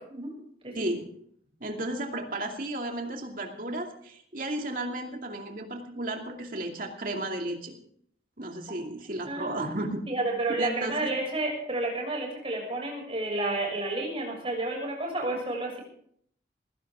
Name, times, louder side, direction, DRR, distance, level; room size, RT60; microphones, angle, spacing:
voice 1, 0.7-1.1 1.6-7.8 8.4-10.0 10.6-10.9, right 1 dB, 50° right, 2 dB, 2.5 m, -34 dB
voice 2, 9.2-15.8, right 2 dB, 30° right, 0 dB, 6.6 m, -31 dB
19.0 x 16.5 x 3.7 m, 0.66 s
head